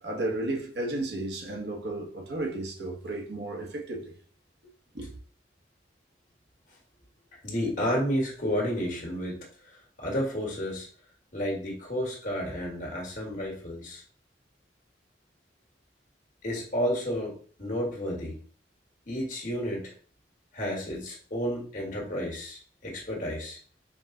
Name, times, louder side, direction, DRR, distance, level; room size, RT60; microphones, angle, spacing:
voice 1, 0.0-4.1 4.9-5.2, right 2 dB, 65° right, 1.1 m, -33 dB
voice 2, 7.4-10.9 11.3-14.0 16.4-18.4 19.1-19.9 20.5-23.6, equal, 45° left, 1.7 m, -31 dB
5.2 x 2.3 x 3.8 m
head